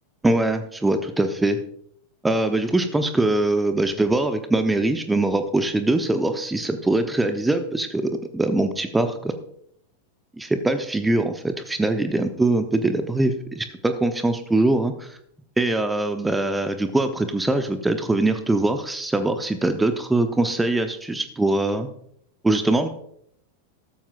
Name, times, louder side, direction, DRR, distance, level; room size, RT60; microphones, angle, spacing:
voice 1, 0.2-1.6 2.2-9.3 10.4-15.2 15.6-21.9 22.4-22.9, right 2 dB, 10° right, 8 dB, 0.9 m, -22 dB
14.0 x 13.0 x 2.5 m, 0.68 s
figure-of-eight pair, 90°, 0 cm